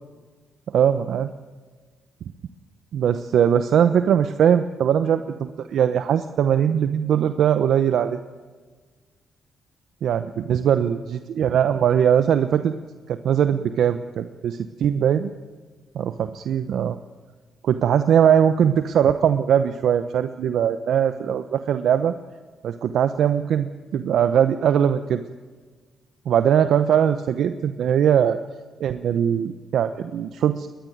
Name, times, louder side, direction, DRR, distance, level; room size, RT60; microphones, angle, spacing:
voice 1, 0.7-1.3 2.9-8.2 10.0-12.7 13.1-15.3 15.9-17.0 17.6-22.1 22.6-25.2 26.3-28.4 28.8-30.7, right 9 dB, 70° right, 10 dB, 0.9 m, -20 dB
21.0 x 20.5 x 9.4 m, 1.4 s
supercardioid pair, 50°, 0 cm